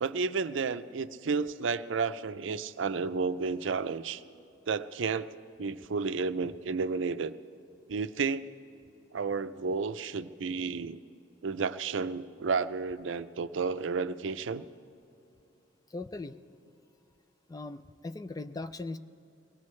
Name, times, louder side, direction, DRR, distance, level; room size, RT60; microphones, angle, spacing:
voice 1, 0.0-4.2 4.7-7.3 7.9-8.5 9.1-11.0 11.4-14.7, right 4 dB, 90° right, 12 dB, 0.5 m, -32 dB
voice 2, 15.9-16.4 17.5-19.0, left 2 dB, 20° left, 10 dB, 0.3 m, -39 dB
22.5 x 18.0 x 3.2 m, 2.7 s
head